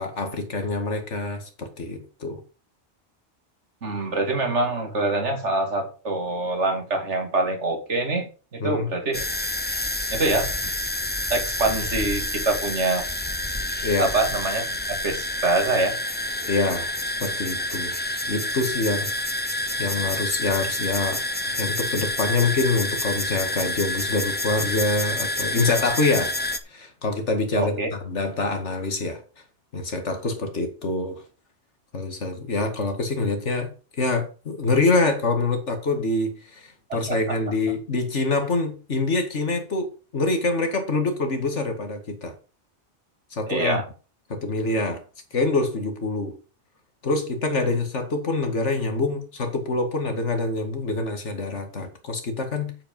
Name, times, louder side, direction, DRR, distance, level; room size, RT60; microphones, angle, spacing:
voice 1, 0.0-2.4 8.6-8.9 13.8-14.1 16.4-16.9 17.2-17.9 18.3-19.1 19.8-26.3 26.7-27.8 28.1-29.2 29.7-31.2 31.9-33.7 34.0-42.3 43.3-43.8 44.3-45.0 45.3-46.4 47.0-52.8, left 3 dB, 85° left, 6 dB, 2.3 m, -25 dB
voice 2, 3.8-9.2 10.1-10.5 11.3-13.1 14.0-15.9 27.5-27.9 36.9-37.4 43.5-43.8, right 2 dB, 80° right, 4 dB, 2.5 m, -25 dB
sound 1, 9.1-26.6, left 1 dB, 10° left, 0.7 m, -28 dB
8.5 x 7.9 x 5.3 m, 0.36 s
omnidirectional pair, 1.2 m